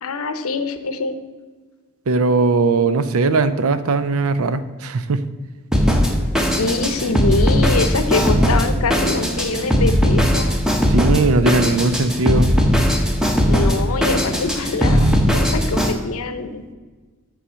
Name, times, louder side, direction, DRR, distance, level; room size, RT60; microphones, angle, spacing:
voice 1, 0.0-1.2 6.4-10.6 13.5-16.6, left 3 dB, 75° left, 10 dB, 0.7 m, -24 dB
voice 2, 2.1-5.2 10.9-12.5, right 3 dB, 75° right, 13 dB, 0.5 m, -19 dB
Drum kit, 5.7-15.9, equal, 5° right, 0.8 m, -18 dB
7.1 x 5.7 x 6.2 m, 1.4 s
head